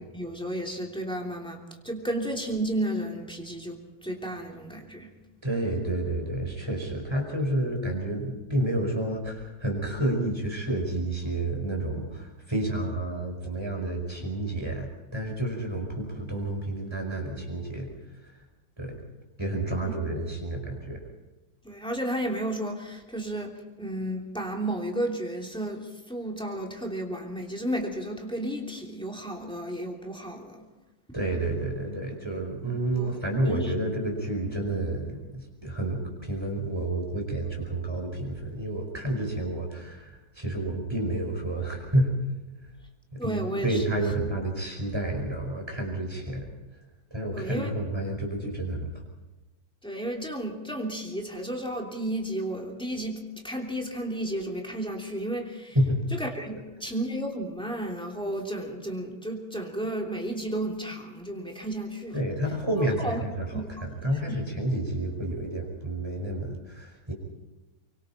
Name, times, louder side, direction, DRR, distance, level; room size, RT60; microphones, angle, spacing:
voice 1, 0.0-5.1 19.8-19.9 21.6-30.6 32.6-33.1 33.4-33.7 43.2-43.8 47.3-47.7 49.8-55.7 56.2-62.2 63.0-63.2 63.5-63.7 64.0-64.1, right 1 dB, 5° left, -1 dB, 3.0 m, -33 dB
voice 2, 5.4-17.9 18.2-18.3 18.8-19.0 19.4-21.0 31.1-42.1 43.2-46.5 47.1-48.9 55.8-56.0 62.1-67.1, right 1 dB, 15° right, 1 dB, 5.2 m, -30 dB
24.5 x 24.5 x 4.4 m, 1.1 s
omnidirectional pair, 2.0 m